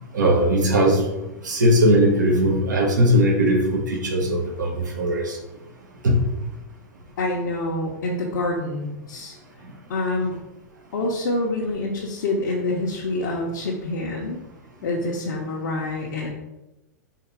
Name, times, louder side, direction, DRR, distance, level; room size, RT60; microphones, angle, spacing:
voice 1, 0.1-1.0 1.4-5.4 6.0-6.2, equal, 80° right, 0 dB, 1.1 m, -19 dB
voice 2, 7.2-9.3 9.9-10.4 10.9-14.4 14.8-16.3, left 2 dB, 70° left, -2 dB, 0.8 m, -26 dB
3.8 x 2.8 x 4.7 m, 0.96 s
hypercardioid pair, 105°, 10 cm